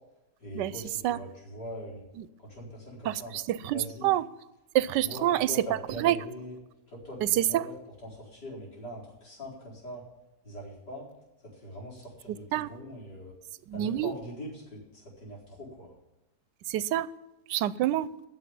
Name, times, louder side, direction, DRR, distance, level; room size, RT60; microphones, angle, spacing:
voice 1, 0.4-2.0 2.4-3.3 3.7-4.1 5.0-6.5 6.9-7.7 8.0-10.0 10.4-11.1 11.4-13.3 13.7-15.9, equal, 70° left, 5.2 m, -42 dB
voice 2, 3.0-4.2 4.7-5.5 6.0-6.2 7.2-7.7 12.5-12.7 13.7-14.1 16.7-17.1 17.5-18.1, right 13 dB, 85° right, 1.2 m, -27 dB
9.8 x 7.1 x 9.1 m
omnidirectional pair, 1.8 m